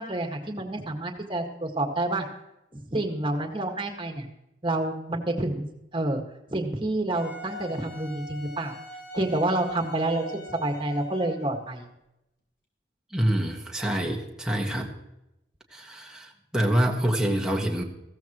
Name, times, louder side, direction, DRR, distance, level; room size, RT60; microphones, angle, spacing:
voice 1, 0.0-2.3 2.7-4.3 4.6-5.7 5.9-6.2 6.5-8.8 9.1-11.9, right 2 dB, 25° right, 3 dB, 1.8 m, -28 dB
Wind instrument woodwind instrument, 7.1-11.7, left 1 dB, 60° left, 4.2 m, -42 dB
voice 2, 13.1-14.9 15.7-17.8, right 1 dB, 5° right, 0 dB, 1.6 m, -26 dB
15.5 x 14.5 x 3.1 m, 0.88 s
head